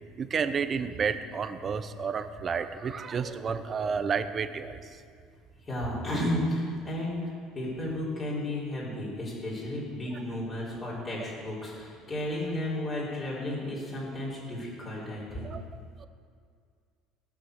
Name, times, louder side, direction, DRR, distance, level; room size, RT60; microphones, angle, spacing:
voice 1, 0.2-5.0 15.4-15.6 16.0-16.1, right 6 dB, 30° right, 10 dB, 0.7 m, -31 dB
voice 2, 5.6-15.5, left 1 dB, 25° left, -8 dB, 3.9 m, -33 dB
18.0 x 6.1 x 6.4 m, 2.2 s
cardioid pair, 130°, 0 cm